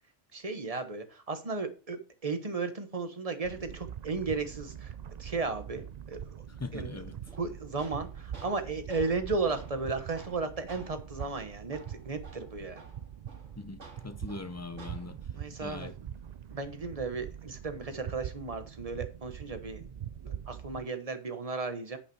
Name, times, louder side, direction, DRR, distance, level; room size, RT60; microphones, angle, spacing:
voice 1, 0.3-4.9 5.2-6.4 6.7-7.0 7.3-12.8 15.3-15.9 16.5-19.8 20.2-22.0, right 4 dB, 30° right, 1.1 m, -35 dB
sound 1, 3.4-20.9, right 9 dB, 55° right, 0.4 m, -43 dB
voice 2, 6.6-7.2 13.6-15.2 15.6-15.9, left 3 dB, 20° left, 0.5 m, -41 dB
Tools, 7.3-15.3, right 3 dB, 75° right, 2.1 m, -53 dB
10.0 x 5.7 x 4.8 m
omnidirectional pair, 1.3 m